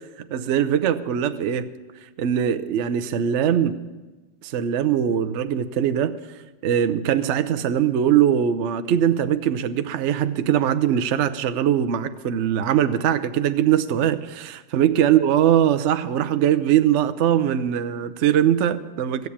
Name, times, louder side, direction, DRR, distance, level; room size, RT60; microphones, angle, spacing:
voice 1, 0.3-1.7 2.2-3.8 4.4-6.1 6.6-19.3, right 10 dB, 75° right, 10 dB, 0.6 m, -21 dB
14.5 x 8.1 x 8.5 m, 1.2 s
omnidirectional pair, 2.0 m